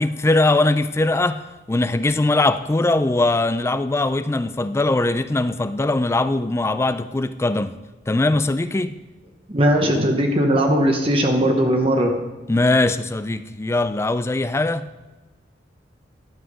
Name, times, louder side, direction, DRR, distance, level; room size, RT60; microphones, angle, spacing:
voice 1, 0.0-1.4 1.7-7.8 8.1-9.0 12.5-14.9, left 2 dB, 15° left, 12 dB, 0.3 m, -21 dB
voice 2, 9.5-12.1, equal, 30° right, 2 dB, 0.9 m, -18 dB
11.5 x 5.7 x 5.3 m, 1.2 s
head